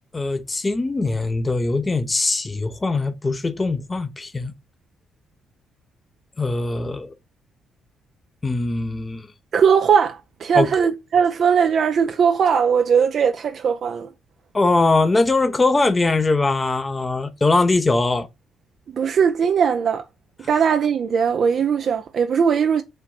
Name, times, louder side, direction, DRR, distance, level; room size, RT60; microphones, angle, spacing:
voice 1, 0.1-4.5 6.4-7.1 8.4-9.3 10.5-10.7 14.5-18.3, left 3 dB, 20° left, 0.7 m, -21 dB
voice 2, 9.5-14.1 18.9-20.0 20.5-22.8, right 7 dB, 55° right, 0.5 m, -19 dB
4.4 x 2.6 x 4.3 m
cardioid pair, 90°, 0 cm